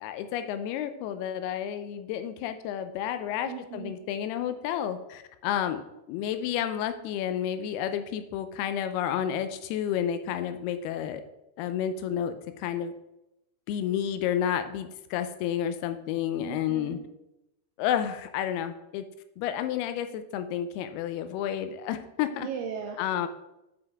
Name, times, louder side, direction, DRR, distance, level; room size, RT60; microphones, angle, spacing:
voice 1, 0.0-11.2 11.6-12.9 13.7-17.0 17.8-19.0 19.4-22.5 23.0-23.3, left 9 dB, 90° left, 10 dB, 2.6 m, -31 dB
voice 2, 3.5-3.9 16.4-17.0 22.4-23.0, right 7 dB, 85° right, 3 dB, 2.1 m, -37 dB
7.7 x 5.3 x 3.5 m, 0.90 s
omnidirectional pair, 4.5 m